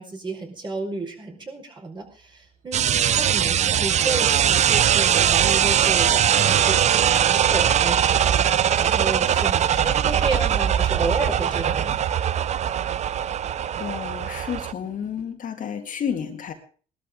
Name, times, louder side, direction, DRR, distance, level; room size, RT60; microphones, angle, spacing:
voice 1, 0.0-8.3 8.8-12.0, right 3 dB, 25° right, 1 dB, 5.0 m, -32 dB
sound 1, 2.7-14.7, right 9 dB, 40° right, 0.6 m, -21 dB
sound 2, 7.3-15.2, right 5 dB, 60° right, 5.8 m, -39 dB
voice 2, 13.8-16.5, left 8 dB, 50° left, 4 dB, 2.1 m, -31 dB
20.0 x 13.0 x 3.8 m, 0.40 s
cardioid pair, 110°, 17 cm